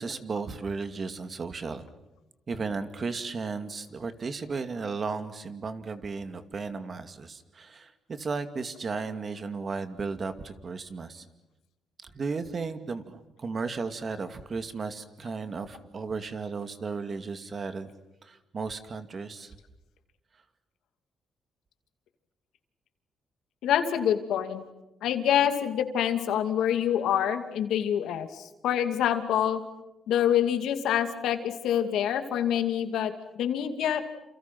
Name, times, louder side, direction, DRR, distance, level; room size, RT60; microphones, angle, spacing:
voice 1, 0.0-1.9 2.5-11.3 12.0-17.9 18.2-19.6, right 4 dB, 40° right, 9 dB, 2.4 m, -35 dB
voice 2, 23.6-24.6 25.0-29.6 30.1-34.0, left 10 dB, 85° left, 8 dB, 2.6 m, -26 dB
29.0 x 28.5 x 6.1 m, 0.99 s
cardioid pair, 105°, 0 cm